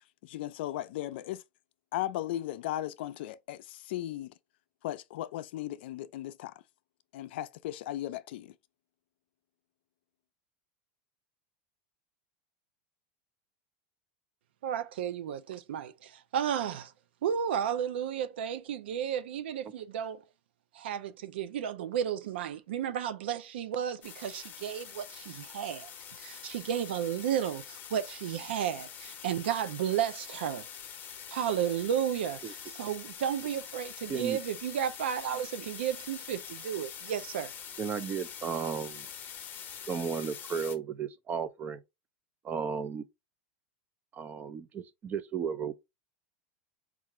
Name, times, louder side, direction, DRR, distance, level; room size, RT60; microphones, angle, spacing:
voice 1, 0.2-1.4 1.9-4.3 4.8-6.5 7.1-8.5, left 13 dB, 75° left, 0.3 m, -36 dB
voice 2, 14.6-16.9 17.2-20.2 20.7-25.9 26.2-30.6 31.3-37.5, right 9 dB, 90° right, 0.4 m, -33 dB
sound 1, 24.0-40.8, left 8 dB, 35° left, 0.7 m, -45 dB
voice 3, 37.8-39.1 39.9-41.8 42.4-43.0 44.1-45.7, right 6 dB, 30° right, 0.4 m, -34 dB
4.6 x 2.4 x 3.0 m
supercardioid pair, 130°, 6 cm